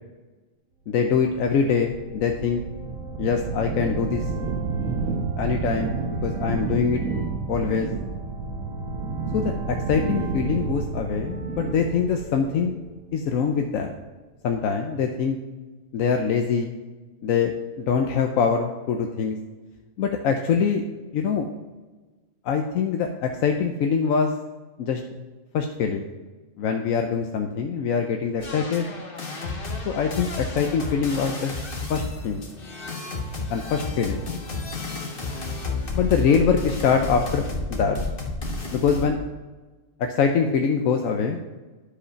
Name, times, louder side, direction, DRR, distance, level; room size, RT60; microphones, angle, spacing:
voice 1, 0.9-2.6 3.2-4.2 5.4-7.0 7.5-7.9 9.3-12.8 13.1-14.0 14.4-15.4 15.9-16.7 17.2-17.5 17.8-19.4 20.0-20.8 21.1-21.5 22.4-24.3 24.8-25.0 25.5-26.1 26.6-28.9 29.8-31.5 31.9-32.4 33.5-34.2 35.9-37.4 37.7-38.0 38.7-39.2 40.0-41.4, left 6 dB, 85° left, 4 dB, 1.1 m, -24 dB
sound 1, 1.2-13.3, right 4 dB, 85° right, 1.3 m, -30 dB
sound 2, 28.4-39.1, left 3 dB, 45° left, 1.5 m, -31 dB
11.0 x 5.1 x 5.7 m, 1.3 s
omnidirectional pair, 1.4 m